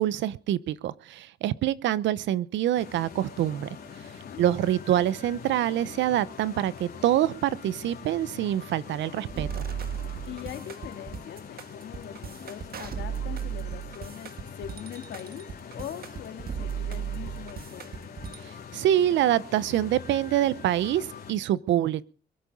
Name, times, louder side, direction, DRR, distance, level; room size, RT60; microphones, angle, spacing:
voice 1, 0.0-3.7 4.4-9.6 18.4-22.0, right 12 dB, 85° right, 0.8 m, -26 dB
sound 1, 2.7-21.3, left 6 dB, 55° left, 3.7 m, -44 dB
voice 2, 4.1-4.4 10.3-17.8, left 10 dB, 80° left, 2.1 m, -42 dB
sound 2, 9.3-18.4, right 8 dB, 55° right, 1.5 m, -36 dB
23.0 x 8.6 x 5.3 m
cardioid pair, 90°, 19 cm